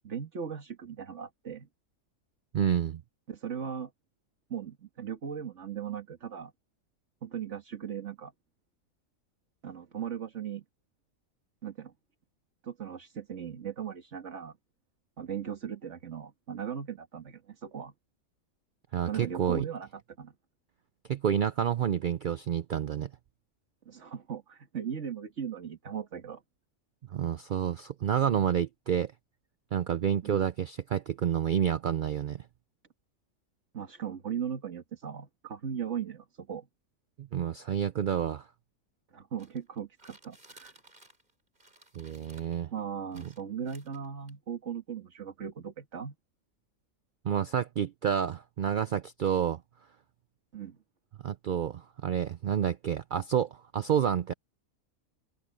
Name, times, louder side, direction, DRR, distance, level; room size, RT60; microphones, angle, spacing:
voice 1, 0.0-1.7 3.3-3.9 4.5-6.5 7.2-8.3 9.6-10.6 11.6-11.9 12.6-14.5 15.2-17.9 19.1-19.9 20.2-20.3 23.9-26.4 30.2-30.5 33.7-36.7 39.1-40.7 42.7-46.2 50.5-50.8, right 8 dB, 55° right, 2.0 m, -38 dB
voice 2, 2.5-3.0 18.9-19.6 21.1-23.1 27.1-29.1 29.7-32.4 37.2-38.5 42.0-42.7 43.2-43.3 47.2-49.6 51.2-54.3, right 9 dB, 90° right, 0.4 m, -29 dB
sound 1, 39.4-41.3 41.6-42.6 43.1-44.3, right 2 dB, 35° right, 4.1 m, -57 dB
open air
omnidirectional pair, 1.5 m